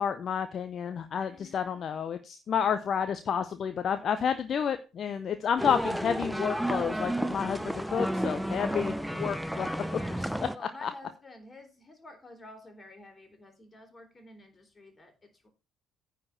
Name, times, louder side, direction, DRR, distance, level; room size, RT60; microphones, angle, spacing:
voice 1, 0.0-9.7 10.8-10.9, left 7 dB, 50° left, 10 dB, 0.8 m, -30 dB
voice 2, 1.2-2.0 9.6-15.5, left 2 dB, 25° left, 5 dB, 3.6 m, -50 dB
sound 1, 5.6-10.6, right 1 dB, 5° right, 0.7 m, -32 dB
9.7 x 4.7 x 7.2 m, 0.31 s
figure-of-eight pair, 50°, 0 cm